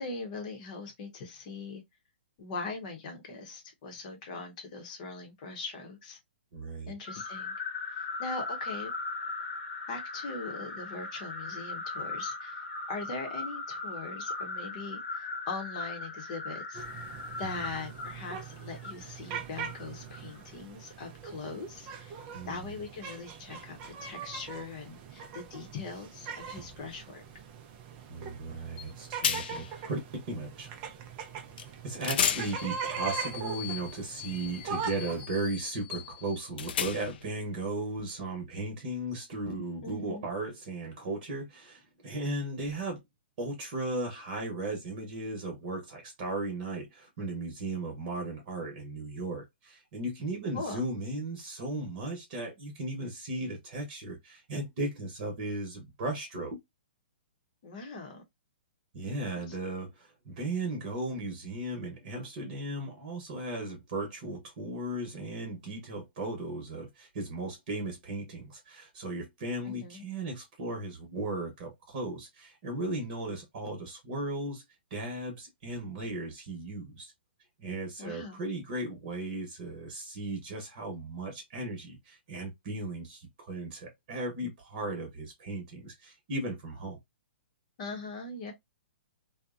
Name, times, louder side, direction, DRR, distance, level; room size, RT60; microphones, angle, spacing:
voice 1, 0.0-1.8 2.4-6.2 6.9-7.5 8.0-8.9 9.9-12.6 12.9-16.8 17.4-22.2 22.4-27.2 39.8-40.3 50.5-50.8 57.6-58.2 59.5-59.6 69.6-70.0 78.0-78.4 87.8-88.5, left 3 dB, 40° left, 0.8 m, -41 dB
voice 2, 6.5-6.9 17.4-17.5 22.3-22.7 28.1-30.0 30.3-30.7 31.8-43.0 43.4-56.6 58.9-74.6 74.9-77.1 77.6-87.0, right 2 dB, 45° right, 1.0 m, -36 dB
sound 1, 7.0-20.4, left 3 dB, 80° left, 1.0 m, -39 dB
sound 2, 16.7-35.2, right 6 dB, 30° right, 0.4 m, -41 dB
sound 3, 28.8-28.9 29.2-29.7 31.6-31.7 32.0-37.3, left 8 dB, 60° left, 0.4 m, -35 dB
2.7 x 2.1 x 2.4 m
hypercardioid pair, 145°, 6 cm